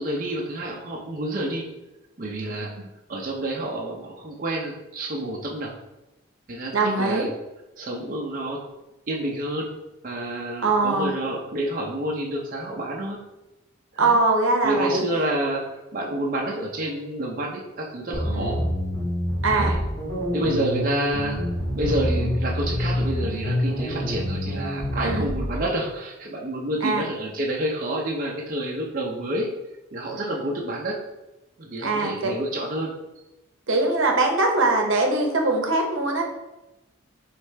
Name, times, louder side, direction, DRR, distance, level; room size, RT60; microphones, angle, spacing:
voice 1, 0.0-1.7 2.2-2.7 3.1-5.7 6.5-7.3 7.8-8.6 9.1-9.8 10.0-13.2 13.9-14.2 14.6-18.6 19.4-19.8 20.3-21.4 21.7-29.5 29.9-31.0 31.6-32.9, right 1 dB, 40° right, -2 dB, 0.6 m, -29 dB
voice 2, 6.7-7.3 10.6-11.1 14.0-15.0 18.3-18.5 19.4-19.8 25.0-25.3 26.8-27.0 31.8-32.3 33.7-36.2, right 3 dB, 75° right, 2 dB, 0.8 m, -22 dB
sound 1, 18.1-25.5, equal, 30° left, 1.4 m, -26 dB
4.8 x 3.2 x 3.3 m, 0.98 s
head